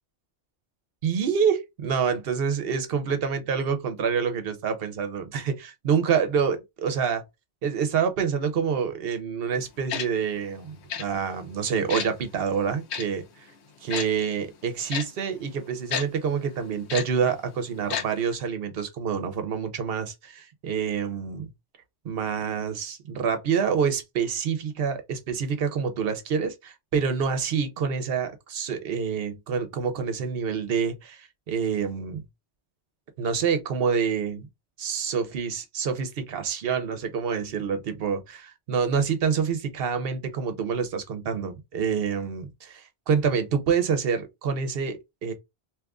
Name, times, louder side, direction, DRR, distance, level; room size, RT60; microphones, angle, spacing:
voice 1, 1.0-7.2 7.6-13.5 13.8-21.5 22.0-32.2 33.2-34.5 34.8-45.3, right 6 dB, 65° right, 0.9 m, -27 dB
Tick-tock, 9.9-10.1 10.9-11.0 11.9-12.1 12.9-13.0 13.9-14.1 14.9-15.0 15.9-16.0 16.9-17.0 17.9-18.0 18.3-18.4, left 8 dB, 80° left, 1.0 m, -29 dB
2.9 x 2.4 x 3.4 m
omnidirectional pair, 1.1 m